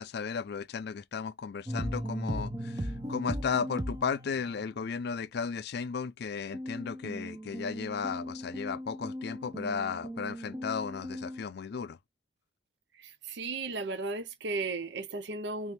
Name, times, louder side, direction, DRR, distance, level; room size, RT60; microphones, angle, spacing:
voice 1, 0.0-12.0, left 6 dB, 60° left, 0.4 m, -35 dB
sound 1, 1.7-4.8 6.5-11.4, equal, 20° right, 0.6 m, -38 dB
voice 2, 13.0-15.7, right 3 dB, 65° right, 0.6 m, -35 dB
3.1 x 3.0 x 3.3 m
head